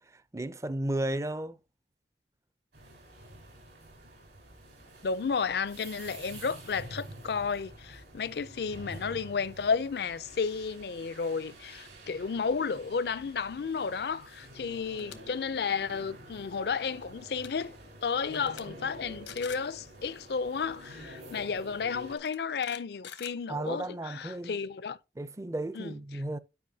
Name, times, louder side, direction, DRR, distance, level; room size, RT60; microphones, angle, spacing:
voice 1, 0.0-1.6 23.5-24.5 25.2-26.4, right 1 dB, 15° right, 0.4 m, -34 dB
sound 1, 2.7-22.2, right 1 dB, 75° right, 3.9 m, -48 dB
voice 2, 5.0-17.8 18.0-25.0 25.7-25.9, left 5 dB, 60° left, 0.4 m, -32 dB
sound 2, 14.8-15.2 15.6-15.8 17.0-17.1 17.3-17.7 18.2-18.6 18.9-19.0 19.3-19.7 20.9-21.0 22.1-23.9, left 9 dB, 90° left, 1.0 m, -46 dB
10.5 x 5.3 x 2.7 m
head